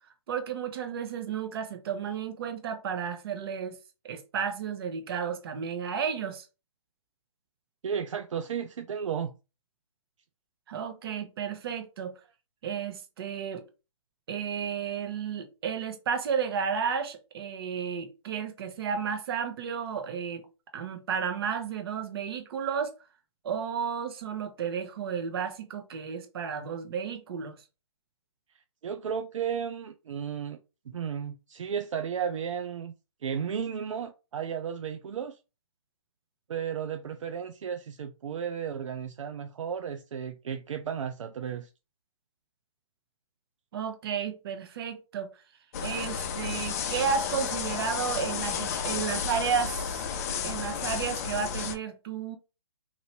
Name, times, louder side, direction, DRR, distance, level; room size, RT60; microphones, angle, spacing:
voice 1, 0.3-3.8 4.0-6.4 10.7-12.1 12.6-13.6 14.3-20.5 20.7-22.9 23.4-27.6 43.7-45.3 45.8-49.9 50.4-52.4, right 7 dB, 45° right, 0.9 m, -32 dB
voice 2, 7.8-9.3 28.8-30.6 30.9-32.9 33.2-35.4 36.5-41.7, right 7 dB, 70° right, 0.4 m, -34 dB
Making Breakfast in Bucharest, 45.7-51.8, left 7 dB, 30° left, 0.4 m, -32 dB
3.0 x 2.6 x 3.1 m
hypercardioid pair, 145°, 17 cm